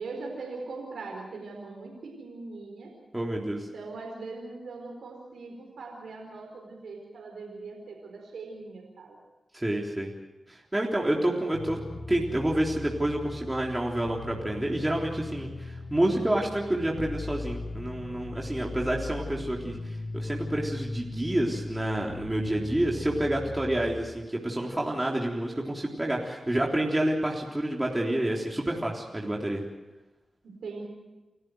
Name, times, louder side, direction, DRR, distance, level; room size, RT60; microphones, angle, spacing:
voice 1, 0.0-2.9 3.7-9.2 30.4-30.8, right 3 dB, 90° right, 1 dB, 4.5 m, -40 dB
voice 2, 3.1-3.7 9.5-10.1 10.5-11.8 12.1-29.6, right 1 dB, 15° right, -2 dB, 3.6 m, -28 dB
sound 1, 11.5-24.0, left 2 dB, 90° left, 5.8 m, -38 dB
29.0 x 14.5 x 7.9 m, 1.1 s
cardioid pair, 50°, 0 cm